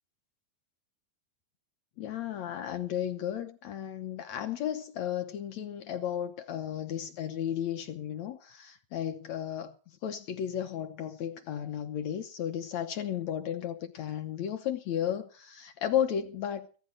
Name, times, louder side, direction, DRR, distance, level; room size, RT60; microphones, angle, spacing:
voice 1, 2.0-9.7 10.0-16.8, left 10 dB, 70° left, 1.9 m, -34 dB
15.5 x 13.5 x 5.0 m
omnidirectional pair, 3.9 m